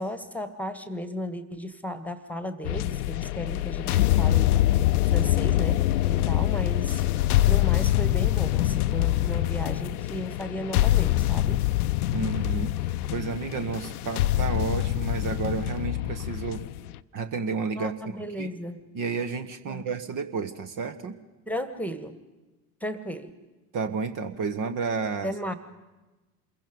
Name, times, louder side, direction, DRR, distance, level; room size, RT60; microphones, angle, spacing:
voice 1, 0.0-4.5 5.1-5.8 6.1-7.0 7.5-11.6 17.8-18.8 19.7-19.9 21.5-22.2 22.8-23.3 25.2-25.5, equal, 5° left, 11 dB, 1.7 m, -34 dB
sound 1, 2.6-17.0, left 14 dB, 70° left, 0.7 m, -24 dB
voice 2, 12.1-16.6 17.1-17.9 18.2-18.5 18.9-21.2 23.7-25.3, right 5 dB, 40° right, 8 dB, 1.4 m, -31 dB
27.5 x 22.5 x 5.3 m, 1.1 s
figure-of-eight pair, 65°, 47 cm